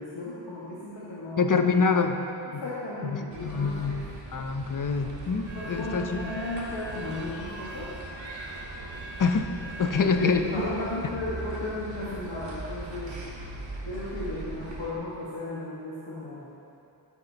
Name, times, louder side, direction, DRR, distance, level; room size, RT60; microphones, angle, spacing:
voice 1, 0.0-1.5 2.6-4.0 5.5-7.9 9.8-13.1 13.9-16.4, left 1 dB, 75° left, -9 dB, 1.8 m, -34 dB
voice 2, 1.4-2.2 2.5-2.6 3.0-4.0 4.3-6.4 9.2-9.5 9.8-10.4, left 5 dB, 45° left, 6 dB, 0.7 m, -25 dB
sound 1, 3.3-14.9, right 2 dB, 80° right, 1.6 m, -40 dB
sound 2, 5.5-10.1, right 2 dB, 35° right, 2.2 m, -44 dB
13.0 x 9.1 x 2.9 m, 2.8 s
wide cardioid pair, 85°, 44 cm